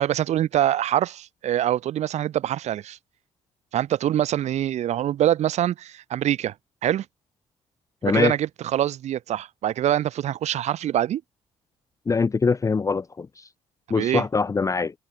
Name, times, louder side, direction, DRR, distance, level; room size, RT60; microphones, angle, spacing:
voice 1, 0.0-3.0 3.7-6.5 6.8-7.0 8.0-11.2 14.0-14.2, right 11 dB, 70° right, 2.6 m, -24 dB
voice 2, 8.0-8.3 12.1-13.4 13.9-14.9, left 4 dB, 25° left, 0.6 m, -23 dB
supercardioid pair, 65°, 12 cm